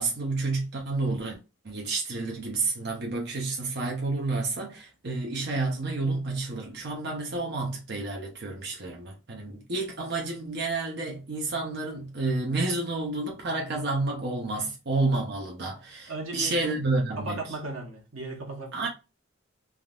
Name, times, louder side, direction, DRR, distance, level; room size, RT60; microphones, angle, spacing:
voice 1, 0.0-1.4 1.6-17.4 18.7-18.9, right 3 dB, 55° right, 0.7 m, -30 dB
voice 2, 16.1-16.7 17.2-18.9, right 2 dB, 85° right, 1.0 m, -36 dB
3.4 x 2.7 x 2.3 m
head